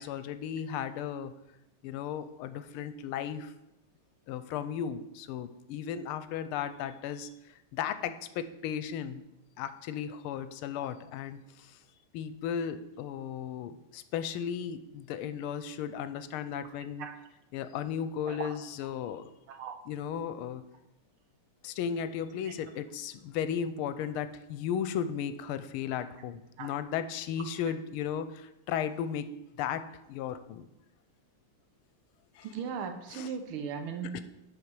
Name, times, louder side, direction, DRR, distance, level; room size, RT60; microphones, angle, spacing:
voice 1, 0.0-1.3 1.8-3.5 4.3-7.3 7.7-9.2 9.6-11.8 12.1-17.1 17.5-19.2 19.9-20.6 21.6-29.3 29.6-30.7 32.3-32.5 33.1-33.3 34.1-34.2, left 8 dB, 90° left, 12 dB, 1.5 m, -35 dB
voice 2, 19.5-19.8 22.5-22.6 26.6-26.7 32.4-34.2, right 6 dB, 85° right, 6 dB, 1.7 m, -38 dB
8.7 x 5.6 x 4.7 m, 0.90 s
omnidirectional pair, 2.3 m